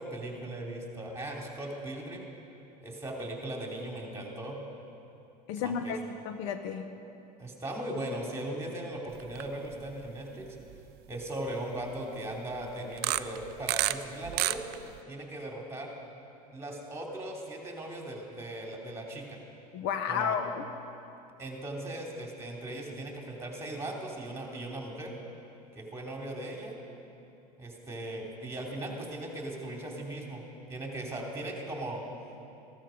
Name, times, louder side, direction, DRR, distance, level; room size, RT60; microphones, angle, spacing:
voice 1, 0.0-2.3 2.8-4.6 5.6-6.0 7.4-10.6 11.1-14.6 15.1-15.9 16.5-19.4 20.1-20.4 21.4-25.1 25.7-26.8 27.6-30.4 30.7-32.0, right 1 dB, 15° right, 0 dB, 2.8 m, -38 dB
voice 2, 5.5-6.0 6.2-6.8 19.7-20.7, left 7 dB, 60° left, 8 dB, 0.9 m, -32 dB
sound 1, 9.2-9.5 9.9-10.0 10.7-10.8 12.9-13.9 14.2-15.0, right 17 dB, 50° right, 0.5 m, -29 dB
14.5 x 13.0 x 5.1 m, 2.8 s
hypercardioid pair, 95°, 21 cm